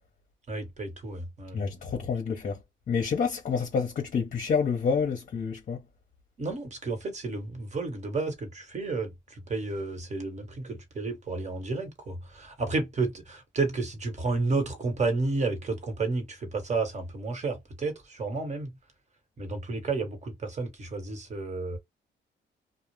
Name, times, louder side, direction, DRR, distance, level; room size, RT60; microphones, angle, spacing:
voice 1, 0.5-1.6 6.4-18.7 19.4-21.8, right 3 dB, 35° right, 1.2 m, -31 dB
voice 2, 1.5-2.6 2.9-5.8, left 6 dB, 45° left, 0.7 m, -28 dB
2.4 x 2.1 x 3.1 m
cardioid pair, 90°, 20 cm